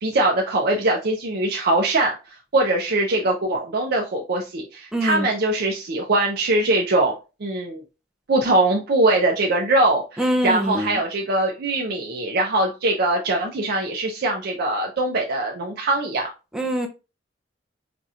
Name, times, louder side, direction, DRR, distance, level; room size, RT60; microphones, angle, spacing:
voice 1, 0.0-2.2 2.5-7.1 7.4-7.8 8.3-16.3, right 2 dB, 55° right, 0.6 m, -22 dB
voice 2, 4.9-5.3 10.2-11.0 16.5-16.9, equal, 5° right, 0.6 m, -23 dB
5.0 x 2.8 x 2.4 m
head